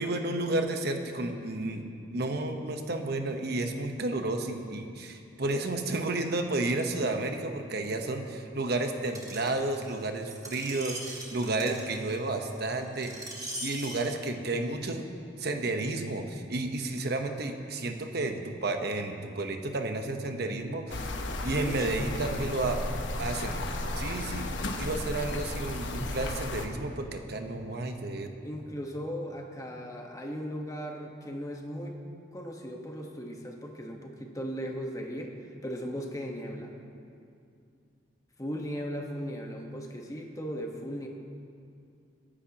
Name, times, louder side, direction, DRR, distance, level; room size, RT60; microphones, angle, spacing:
voice 1, 0.0-13.1 13.4-15.0 15.4-21.1 21.4-22.8 23.2-28.3, right 2 dB, 60° right, 5 dB, 1.0 m, -32 dB
Screech, 9.1-14.1 14.8-14.9, right 1 dB, 20° right, 1.5 m, -41 dB
sound 1, 20.9-26.7, left 2 dB, 75° left, 1.1 m, -34 dB
voice 2, 21.5-22.1 28.4-32.0 32.3-35.3 35.6-36.7 38.4-41.1, equal, 20° left, 1 dB, 1.3 m, -37 dB
26.5 x 10.0 x 2.9 m, 2.4 s
head